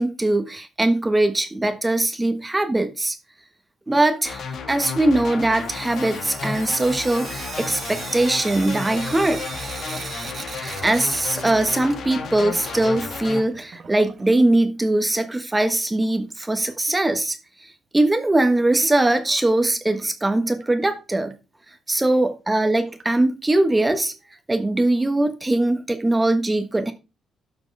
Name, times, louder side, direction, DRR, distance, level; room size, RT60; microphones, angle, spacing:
voice 1, 0.0-3.2 3.9-9.4 10.4-17.4 17.6-21.3 21.9-24.1 24.5-26.9, right 2 dB, 15° right, 1.3 m, -21 dB
sound 1, 4.2-13.4, left 5 dB, 65° left, 2.2 m, -33 dB
Sink (filling or washing) / Drip, 5.5-12.3 12.5-14.5 15.6-15.7 16.0-16.1 16.4-16.5 19.4-19.5 20.0-20.1 20.6-20.7 21.3-21.4 22.0-22.1 23.0-23.1, right 5 dB, 45° right, 1.4 m, -38 dB
11.5 x 6.0 x 3.4 m
cardioid pair, 90°, 0 cm